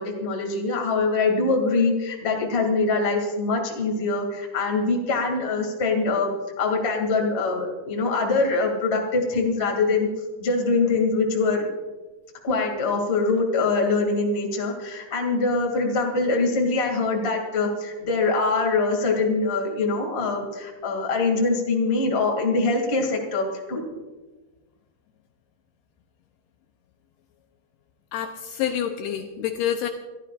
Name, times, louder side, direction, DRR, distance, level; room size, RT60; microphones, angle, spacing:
voice 1, 0.0-6.3 6.6-10.1 10.4-11.6 12.4-23.8, left 3 dB, 25° left, 1 dB, 1.5 m, -23 dB
voice 2, 28.1-29.9, left 9 dB, 80° left, 5 dB, 2.5 m, -27 dB
27.5 x 13.5 x 2.5 m, 1.2 s
omnidirectional pair, 5.1 m